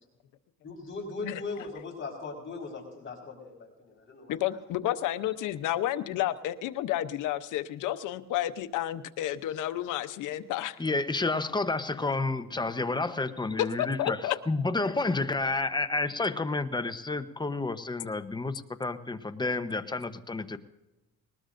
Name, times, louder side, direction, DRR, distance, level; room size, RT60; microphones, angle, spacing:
voice 1, 0.6-4.4 11.9-12.1, left 3 dB, 40° left, -2 dB, 4.4 m, -39 dB
voice 2, 4.3-10.8 13.6-14.4, left 13 dB, 90° left, 10 dB, 0.8 m, -31 dB
voice 3, 10.8-14.2 14.5-20.6, left 3 dB, 15° left, 10 dB, 0.9 m, -30 dB
20.0 x 19.5 x 2.6 m, 1.0 s
cardioid pair, 90°, 30 cm